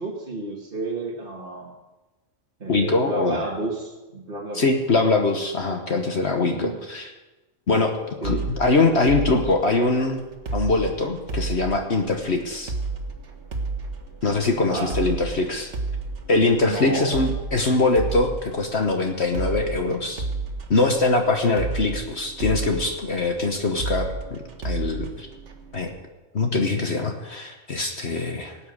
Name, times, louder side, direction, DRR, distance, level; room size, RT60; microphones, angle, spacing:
voice 1, 0.0-1.7 2.6-4.6 6.4-6.8 8.2-8.4 14.7-14.9 16.6-17.1, right 2 dB, 40° right, -2 dB, 1.8 m, -31 dB
voice 2, 2.7-3.4 4.5-7.1 7.7-10.2 10.5-12.7 14.2-15.7 16.3-20.3 20.7-25.3 25.7-25.9 26.3-28.6, left 3 dB, 50° left, 4 dB, 1.4 m, -23 dB
sound 1, 8.2-26.0, right 3 dB, 55° right, 1.7 m, -32 dB
18.0 x 8.5 x 6.5 m, 1.1 s
omnidirectional pair, 1.5 m